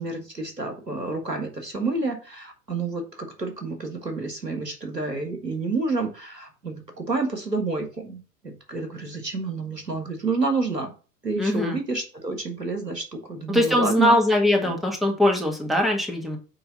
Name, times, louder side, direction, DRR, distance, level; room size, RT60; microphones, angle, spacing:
voice 1, 0.0-10.9 11.2-14.1 14.6-14.8, right 3 dB, 90° right, 5 dB, 1.7 m, -29 dB
voice 2, 11.4-11.8 13.5-16.4, left 1 dB, ahead, 1 dB, 1.6 m, -21 dB
8.6 x 3.4 x 5.3 m, 0.35 s
figure-of-eight pair, 90°, 47 cm